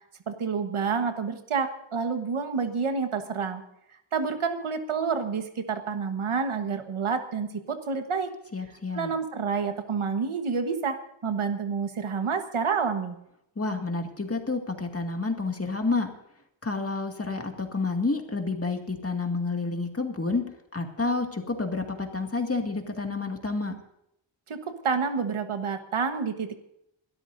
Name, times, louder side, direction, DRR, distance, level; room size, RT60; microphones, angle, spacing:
voice 1, 0.3-3.6 4.1-8.3 8.9-11.0 11.2-13.2 24.5-26.5, right 5 dB, 80° right, 7 dB, 1.5 m, -28 dB
voice 2, 8.5-9.1 13.6-16.1 16.6-20.4 20.7-23.7, left 3 dB, 30° left, 3 dB, 2.1 m, -29 dB
27.5 x 13.0 x 2.7 m, 0.78 s
wide cardioid pair, 105°, 49 cm